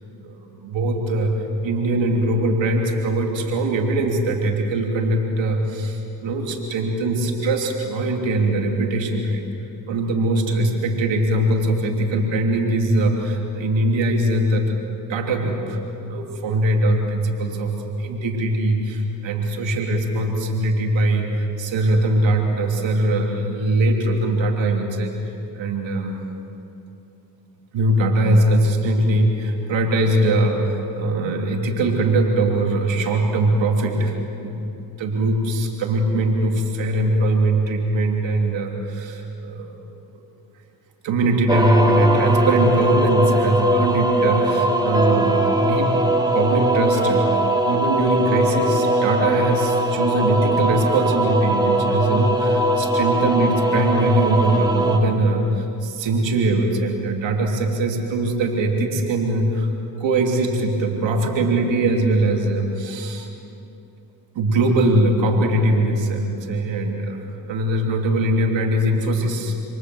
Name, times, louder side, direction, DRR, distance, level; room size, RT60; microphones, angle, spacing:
voice 1, 0.2-9.4 9.9-14.8 15.1-25.2 25.5-26.2 27.7-39.7 41.0-45.9 46.3-59.7 60.0-63.3 64.3-69.5, right 1 dB, 80° right, 2 dB, 3.1 m, -21 dB
sound 1, 41.5-55.0, right 1 dB, 10° right, 5.3 m, -20 dB
29.0 x 23.5 x 7.9 m, 2.8 s
supercardioid pair, 45°, 44 cm